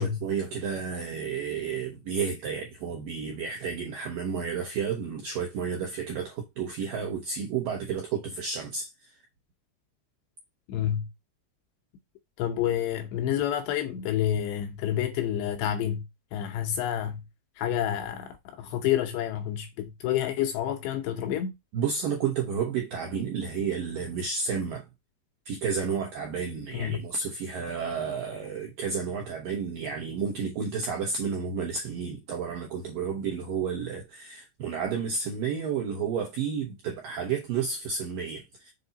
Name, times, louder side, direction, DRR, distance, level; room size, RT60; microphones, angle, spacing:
voice 1, 0.0-9.2 21.7-24.9 25.5-38.7, right 6 dB, 75° right, 2.0 m, -31 dB
voice 2, 10.7-11.1 12.4-16.1 16.3-17.2 17.6-21.5 26.7-27.0, left 10 dB, 80° left, 2.6 m, -29 dB
7.2 x 4.3 x 4.0 m
omnidirectional pair, 5.7 m